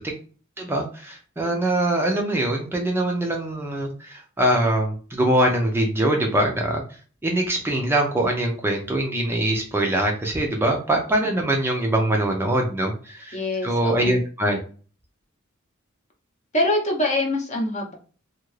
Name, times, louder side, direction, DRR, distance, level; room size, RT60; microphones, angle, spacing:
voice 1, 0.6-6.8 7.2-13.4 13.6-14.6, right 1 dB, 10° right, 1 dB, 0.4 m, -23 dB
voice 2, 13.3-14.2 16.5-17.9, left 1 dB, 35° left, 1 dB, 0.7 m, -24 dB
2.7 x 2.4 x 3.1 m, 0.39 s
head